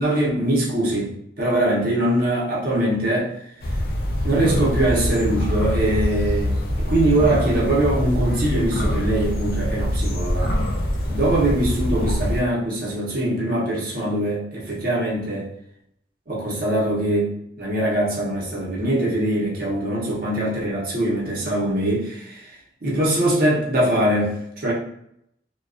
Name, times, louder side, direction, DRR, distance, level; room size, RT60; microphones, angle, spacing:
voice 1, 0.0-3.3 4.2-10.5 11.1-15.5 16.3-22.5 22.8-24.7, right 1 dB, 55° right, -5 dB, 0.8 m, -22 dB
sound 1, 3.6-12.4, left 1 dB, 55° left, 0.4 m, -24 dB
2.3 x 2.2 x 2.4 m, 0.75 s
head